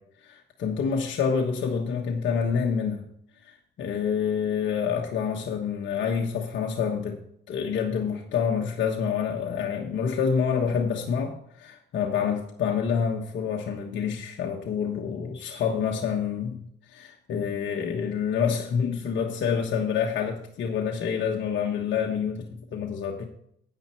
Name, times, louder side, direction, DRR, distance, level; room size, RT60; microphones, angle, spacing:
voice 1, 0.2-3.0 3.4-7.2 7.5-23.3, left 7 dB, 70° left, 1 dB, 1.3 m, -27 dB
9.6 x 9.5 x 4.5 m, 0.69 s
cardioid pair, 90°, 20 cm